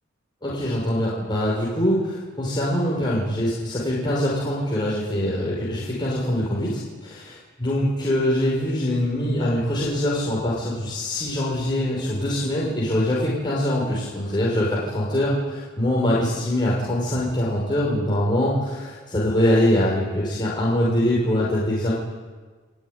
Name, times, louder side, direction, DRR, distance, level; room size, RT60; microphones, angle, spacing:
voice 1, 0.4-7.2 7.6-21.9, left 1 dB, 25° left, -5 dB, 6.0 m, -23 dB
29.5 x 19.0 x 9.9 m, 1.4 s
head